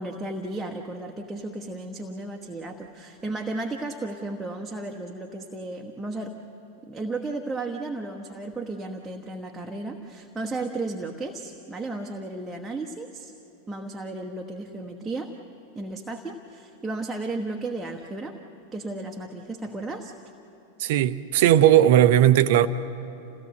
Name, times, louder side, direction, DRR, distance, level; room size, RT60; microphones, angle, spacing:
voice 1, 0.0-6.4 6.8-13.3 13.7-15.3 15.7-18.3 18.7-20.1, right 2 dB, 10° right, 1 dB, 1.2 m, -34 dB
voice 2, 20.8-22.7, right 12 dB, 50° right, 14 dB, 0.7 m, -17 dB
28.0 x 16.5 x 7.7 m, 2.9 s
figure-of-eight pair, 90°, 0 cm